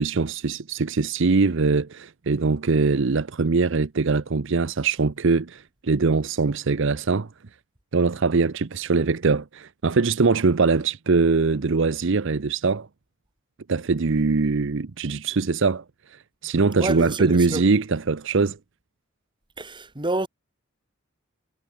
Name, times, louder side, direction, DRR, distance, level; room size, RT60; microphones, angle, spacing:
voice 1, 0.0-7.3 7.9-12.9 13.7-15.8 16.4-18.6, right 4 dB, 65° right, 0.7 m, -22 dB
voice 2, 16.8-17.6 19.6-20.3, right 2 dB, 25° right, 2.0 m, -28 dB
head